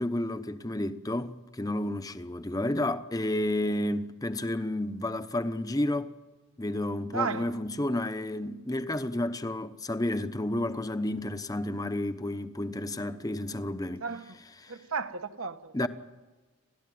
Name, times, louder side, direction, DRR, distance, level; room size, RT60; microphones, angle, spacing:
voice 1, 0.0-6.1 6.6-14.0 14.6-14.8 15.7-15.9, left 1 dB, 15° left, 0.9 m, -31 dB
voice 2, 7.1-7.5 14.0-14.4 14.7-15.9, right 4 dB, 70° right, 1.3 m, -34 dB
29.5 x 13.5 x 9.4 m
head